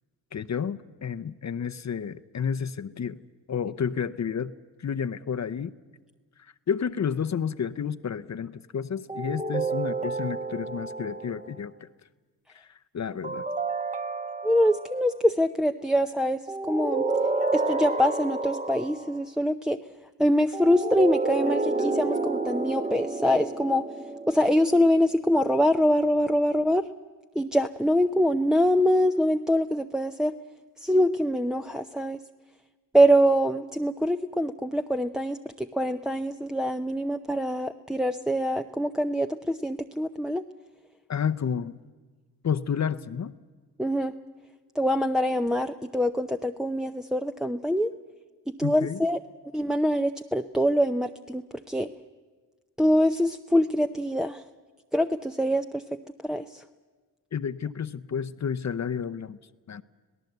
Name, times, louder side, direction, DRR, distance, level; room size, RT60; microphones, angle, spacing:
voice 1, 0.3-3.2 3.5-4.5 4.8-5.7 6.7-11.9 12.5-13.4 41.1-41.8 42.4-43.4 48.6-49.0 57.3-59.4 59.7-59.8, left 7 dB, 40° left, 11 dB, 0.8 m, -31 dB
sound 1, 9.1-11.6 13.2-15.1 16.5-19.2 20.5-25.0, right 3 dB, 20° right, 1.1 m, -30 dB
voice 2, 14.4-16.4 16.7-17.0 17.5-19.8 20.2-23.8 24.3-26.8 27.4-30.3 30.8-32.2 32.9-40.4 43.8-44.1 44.8-47.9 48.6-49.2 49.5-51.4 51.7-51.9 52.8-54.4 54.9-55.8 56.2-56.6, equal, ahead, 6 dB, 0.6 m, -24 dB
26.5 x 17.5 x 8.0 m, 1.4 s
cardioid pair, 60°, 40 cm